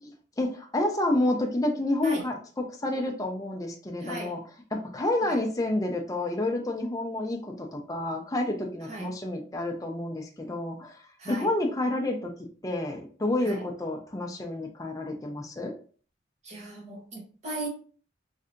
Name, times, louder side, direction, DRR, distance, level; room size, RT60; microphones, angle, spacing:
voice 1, 0.0-4.4 4.7-11.0 11.3-12.3 12.6-15.7, left 1 dB, 20° left, 0.4 m, -29 dB
voice 2, 4.0-4.4 5.3-5.4 8.9-9.1 11.2-11.5 13.4-13.6 16.4-17.7, right 2 dB, 35° right, 0.9 m, -37 dB
3.3 x 2.7 x 2.5 m
head